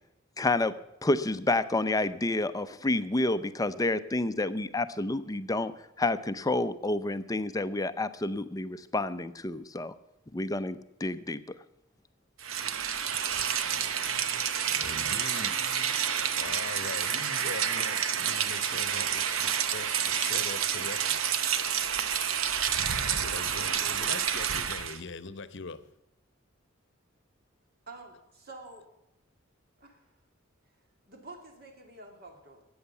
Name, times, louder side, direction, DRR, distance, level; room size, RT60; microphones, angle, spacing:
voice 1, 0.4-0.7 1.0-5.7 6.0-9.9 10.3-11.4, left 2 dB, 20° left, 0.6 m, -29 dB
Rain, 12.4-25.0, right 8 dB, 85° right, 0.9 m, -29 dB
voice 2, 14.6-15.7 16.4-21.2 22.9-25.9, left 4 dB, 60° left, 0.9 m, -42 dB
voice 3, 27.9-28.9 29.8-30.0 30.7-30.8 31.1-32.7, right 2 dB, 50° right, 2.5 m, -48 dB
14.0 x 8.7 x 7.1 m
head